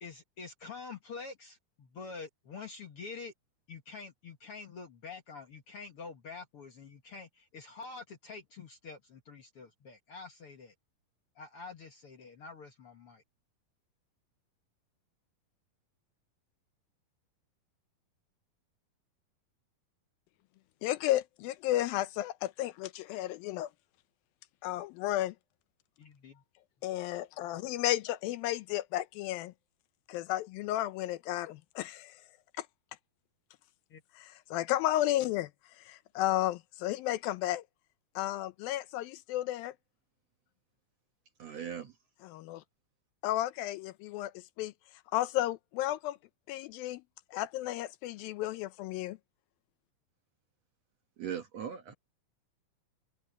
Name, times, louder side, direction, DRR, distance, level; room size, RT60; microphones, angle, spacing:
voice 1, 0.0-3.3 3.7-10.7 11.4-13.2 26.0-26.4 33.9-34.0, left 4 dB, 55° left, 1.7 m, -47 dB
voice 2, 20.8-23.7 24.6-25.3 26.8-29.5 30.1-32.2 32.6-32.7 34.2-35.5 35.9-37.6 38.2-39.7 42.2-42.6 43.2-44.3 44.6-44.7 45.1-46.2 46.5-47.0 47.3-49.2, left 14 dB, 80° left, 2.4 m, -33 dB
voice 3, 41.4-41.9 51.2-51.9, right 8 dB, 55° right, 2.0 m, -39 dB
omnidirectional pair, 4.3 m